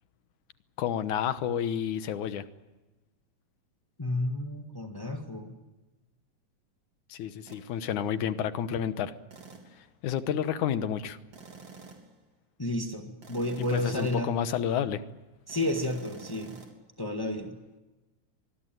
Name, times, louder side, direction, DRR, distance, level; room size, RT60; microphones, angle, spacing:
voice 1, 0.8-2.5 7.1-9.1 10.0-11.2 13.6-15.0, left 9 dB, 70° left, 12 dB, 2.4 m, -30 dB
voice 2, 4.0-5.6 12.6-14.4 15.5-16.6 17.0-17.5, left 1 dB, 25° left, 4 dB, 0.5 m, -31 dB
sound 1, 7.5-7.7 9.3-9.8 11.3-12.2 13.2-14.3 15.5-16.7, right 4 dB, 50° right, 4.2 m, -48 dB
25.0 x 20.5 x 9.2 m, 1.1 s
omnidirectional pair, 3.8 m